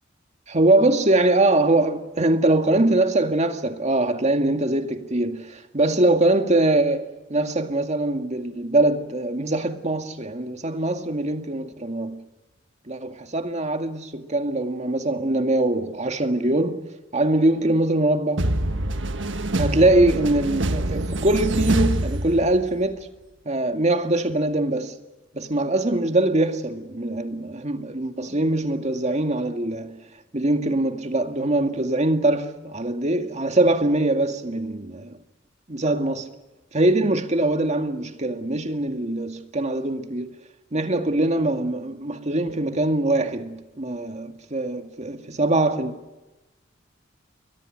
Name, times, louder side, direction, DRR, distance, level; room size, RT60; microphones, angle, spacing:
voice 1, 0.5-12.2 12.9-16.8 17.1-18.4 19.6-23.1 23.5-25.0 25.3-30.0 30.3-35.2 35.7-36.3 36.7-40.3 40.7-45.9, right 2 dB, 35° right, 2.1 m, -22 dB
sound 1, 18.4-22.8, right 1 dB, 70° right, 1.5 m, -25 dB
30.0 x 23.5 x 6.6 m
head